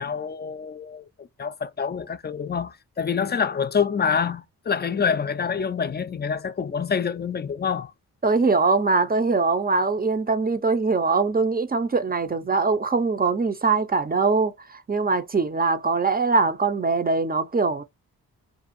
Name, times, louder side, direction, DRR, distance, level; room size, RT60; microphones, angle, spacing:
voice 1, 0.0-7.9, left 6 dB, 30° left, 0.4 m, -26 dB
voice 2, 8.2-17.8, right 4 dB, 25° right, 0.5 m, -22 dB
2.6 x 2.3 x 2.6 m
cardioid pair, 50°, 37 cm